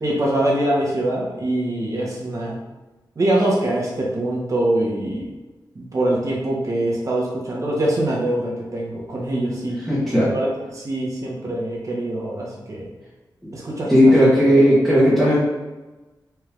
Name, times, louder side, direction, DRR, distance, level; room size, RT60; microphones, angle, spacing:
voice 1, 0.0-2.6 3.2-5.3 5.7-9.8 10.3-10.5 10.7-12.9 13.5-14.3, right 1 dB, 45° right, -4 dB, 1.1 m, -23 dB
voice 2, 9.9-10.3 13.4-13.5 13.9-15.4, equal, ahead, -9 dB, 1.0 m, -15 dB
4.4 x 2.6 x 3.4 m, 1.1 s
wide cardioid pair, 135°, 8 cm